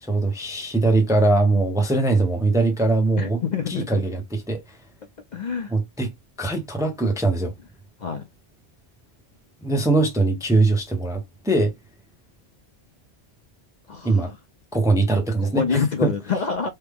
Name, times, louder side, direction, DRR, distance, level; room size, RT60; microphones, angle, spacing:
voice 1, 0.0-3.4 3.7-4.6 5.7-6.1 6.4-7.5 9.6-11.7 14.0-14.3 14.7-16.1, right 2 dB, 5° right, 0.5 m, -21 dB
voice 2, 3.2-4.0 5.3-5.7 8.0-8.2 13.9-14.4 15.4-16.7, left 5 dB, 50° left, 0.6 m, -26 dB
3.3 x 2.1 x 3.4 m
omnidirectional pair, 1.1 m